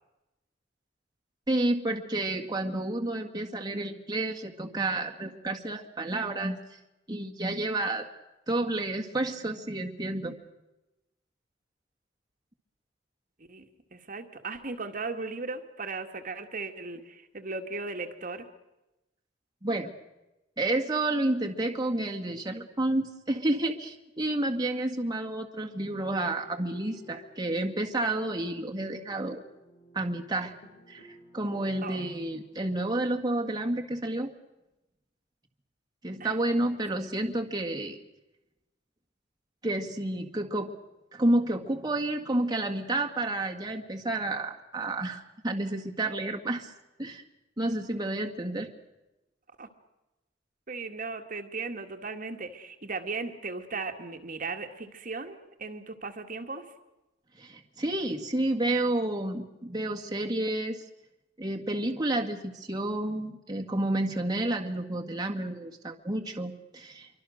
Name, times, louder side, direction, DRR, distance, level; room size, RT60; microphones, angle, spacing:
voice 1, 1.5-6.6 7.1-8.1 8.5-10.4 19.6-19.9 20.6-29.4 29.9-30.5 30.9-34.3 36.0-38.0 39.6-40.7 41.1-46.7 47.0-47.2 47.6-48.7 57.4-60.8 61.4-67.1, right 1 dB, 25° right, 2 dB, 1.8 m, -30 dB
voice 2, 13.9-18.5 31.8-32.0 36.2-36.6 36.9-37.1 49.6-49.7 50.7-56.7, right 3 dB, 50° right, 5 dB, 1.9 m, -37 dB
sound 1, 25.8-33.0, left 1 dB, 50° left, 6.8 m, -55 dB
27.0 x 24.0 x 6.5 m, 0.98 s
head